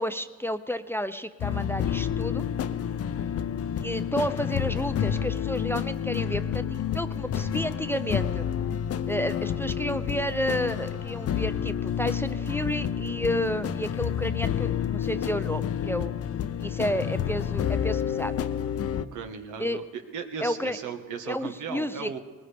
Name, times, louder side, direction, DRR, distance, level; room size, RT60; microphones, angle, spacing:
voice 1, 0.0-2.5 3.8-8.5 9.1-16.1 16.6-18.3 19.6-19.8 20.4-20.8 21.3-22.1, equal, 10° left, 11 dB, 0.5 m, -31 dB
sound 1, 1.4-19.1, left 9 dB, 50° left, 0.6 m, -29 dB
voice 2, 19.1-22.2, right 6 dB, 80° right, 5 dB, 1.5 m, -36 dB
20.0 x 19.0 x 3.5 m, 1.4 s
cardioid pair, 90°, 30 cm